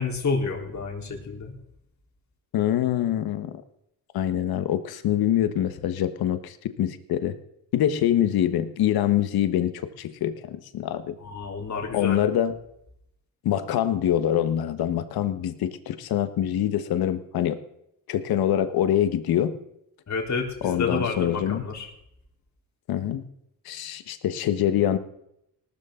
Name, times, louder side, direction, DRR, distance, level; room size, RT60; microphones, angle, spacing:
voice 1, 0.0-1.5 11.2-12.2 20.1-21.9, left 4 dB, 50° left, 1 dB, 3.8 m, -29 dB
voice 2, 2.5-3.5 4.1-7.3 7.7-11.1 11.9-12.6 13.4-17.6 18.1-19.6 20.6-21.7 22.9-23.2 23.7-25.0, left 11 dB, 85° left, 11 dB, 1.4 m, -25 dB
19.0 x 13.0 x 3.9 m, 0.76 s
cardioid pair, 85°, 36 cm